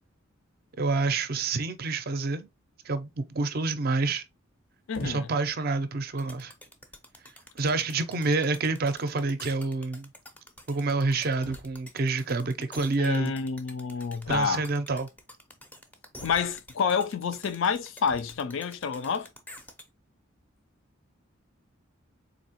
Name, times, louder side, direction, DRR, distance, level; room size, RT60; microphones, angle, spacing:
voice 1, 0.8-2.5 2.8-4.2 5.0-6.5 7.6-10.1 10.7-13.3 14.3-15.1, right 3 dB, 45° right, 0.5 m, -28 dB
sound 1, 4.9-5.5 6.3-6.5 7.3-7.4 7.6-7.9 9.2-9.3 9.5-9.6 9.8-9.9 11.4-12.0 14.2-14.9 16.2-16.8 18.0-18.5, left 1 dB, 85° left, 0.9 m, -45 dB
voice 2, 4.9-5.3 13.0-14.6 16.2-19.3, left 6 dB, 70° left, 0.4 m, -28 dB
sound 2, 6.2-19.8, left 1 dB, 10° left, 0.5 m, -48 dB
4.0 x 2.8 x 2.8 m
head